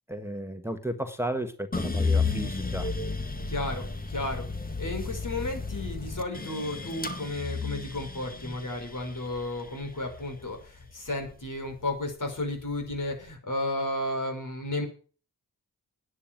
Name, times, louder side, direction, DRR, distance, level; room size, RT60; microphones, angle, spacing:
voice 1, 0.1-2.9, right 1 dB, 5° right, 7 dB, 1.5 m, -34 dB
sound 1, 1.7-11.9 12.4-13.2, left 4 dB, 25° left, 1.9 m, -33 dB
voice 2, 3.5-4.5 4.8-14.9, left 1 dB, 50° left, 4 dB, 5.5 m, -33 dB
9.9 x 9.4 x 8.9 m, 0.39 s
cardioid pair, 55°, 38 cm